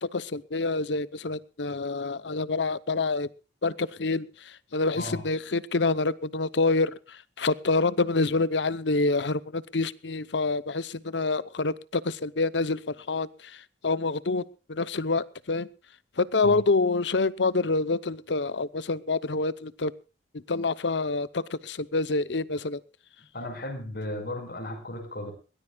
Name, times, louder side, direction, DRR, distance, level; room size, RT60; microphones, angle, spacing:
voice 1, 0.0-3.3 3.6-4.3 4.7-6.9 7.4-13.3 13.8-14.4 14.7-15.7 16.2-19.9 20.3-22.8, left 3 dB, 75° left, 17 dB, 0.9 m, -27 dB
voice 2, 23.3-25.3, left 1 dB, 60° left, 7 dB, 5.2 m, -35 dB
22.0 x 18.0 x 2.4 m, 0.34 s
head